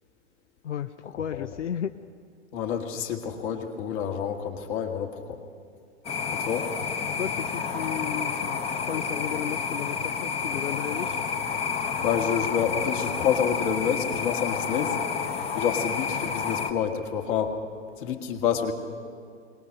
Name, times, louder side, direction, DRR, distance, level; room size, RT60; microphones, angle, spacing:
voice 1, 0.6-2.0 7.2-11.2, left 9 dB, 80° left, 10 dB, 0.6 m, -34 dB
voice 2, 2.5-5.4 6.3-6.7 12.0-15.0 15.5-17.6 18.0-18.7, left 7 dB, 45° left, 4 dB, 2.0 m, -28 dB
sound 1, 6.0-16.7, left 6 dB, 15° left, 1.0 m, -30 dB
22.5 x 19.0 x 6.5 m, 2.3 s
figure-of-eight pair, 115°, 36 cm